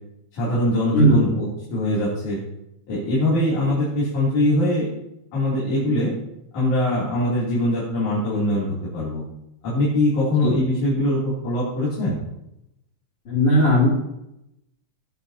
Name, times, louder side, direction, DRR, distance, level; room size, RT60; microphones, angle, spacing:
voice 1, 0.3-2.4 2.9-4.9 5.3-6.1 6.5-8.7 8.9-9.2 9.6-12.2, left 1 dB, 90° left, -9 dB, 4.4 m, -22 dB
voice 2, 13.3-13.9, equal, 50° left, -5 dB, 3.7 m, -16 dB
17.5 x 8.1 x 2.8 m, 0.85 s
omnidirectional pair, 3.3 m